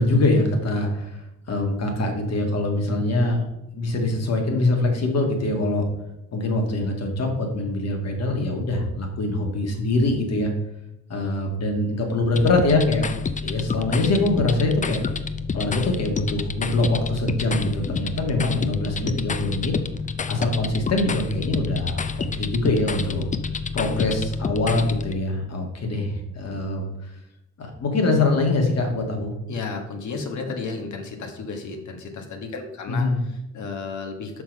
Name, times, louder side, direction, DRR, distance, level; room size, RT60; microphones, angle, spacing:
voice 1, 0.0-3.4 3.7-5.8 6.3-10.5 11.1-13.1 13.4-15.0 15.5-19.8 20.3-23.2 23.7-27.1 27.6-29.3 32.9-33.2, left 2 dB, 55° left, 3 dB, 2.0 m, -23 dB
sound 1, 12.3-25.1, left 5 dB, 25° left, 0.5 m, -29 dB
voice 2, 23.0-23.4 29.5-34.4, left 4 dB, 70° left, 4 dB, 1.6 m, -33 dB
5.9 x 5.8 x 5.3 m, 0.87 s
cardioid pair, 90°, 30 cm